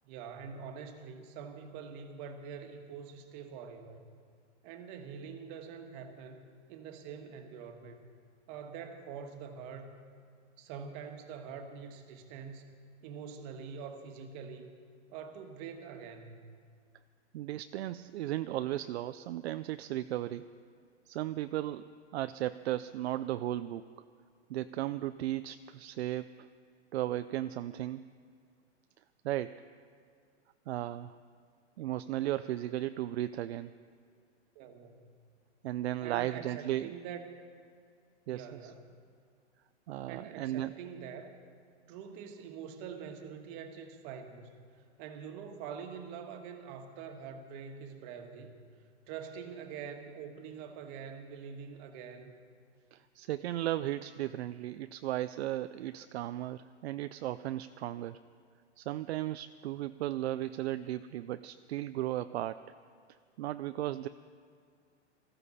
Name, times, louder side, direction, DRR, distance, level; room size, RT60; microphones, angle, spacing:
voice 1, 0.0-4.0 4.6-8.1 8.5-10.0 10.6-12.6 13.0-14.7 15.1-16.6 34.5-35.1 36.0-37.2 38.3-38.9 40.1-41.3 41.9-44.5 45.0-48.5 49.1-52.3, right 6 dB, 40° right, 6 dB, 1.6 m, -45 dB
voice 2, 17.3-20.5 21.1-21.9 22.1-23.8 24.5-26.4 26.9-28.1 29.2-29.6 30.7-31.2 31.8-33.7 35.6-36.9 38.3-38.5 39.9-40.7 52.9-58.2 58.8-62.6 63.4-64.1, right 14 dB, 65° right, 12 dB, 0.5 m, -35 dB
19.5 x 14.5 x 4.2 m, 2.2 s
hypercardioid pair, 140°, 35 cm